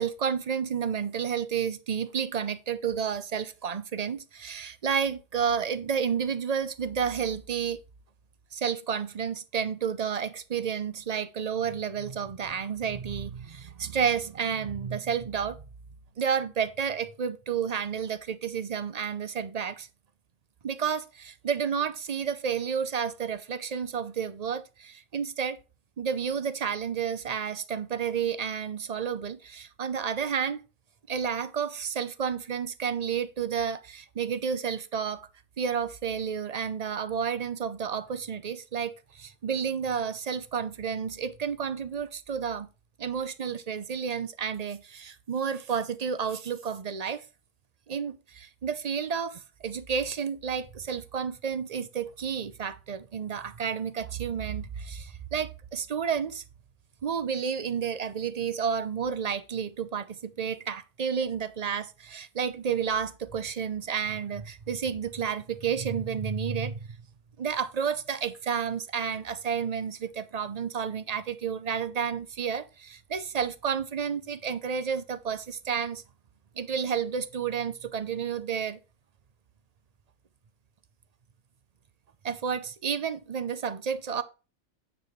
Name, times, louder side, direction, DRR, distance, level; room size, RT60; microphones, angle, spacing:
voice 1, 0.0-7.8 8.5-15.6 16.2-19.9 20.6-25.6 26.0-30.6 31.1-35.2 35.6-42.7 43.0-47.2 47.9-56.4 57.0-66.8 67.4-76.0 76.6-78.8 82.2-84.2, right 7 dB, 50° right, 0.5 m, -31 dB
9.5 x 7.6 x 3.1 m
omnidirectional pair, 1.5 m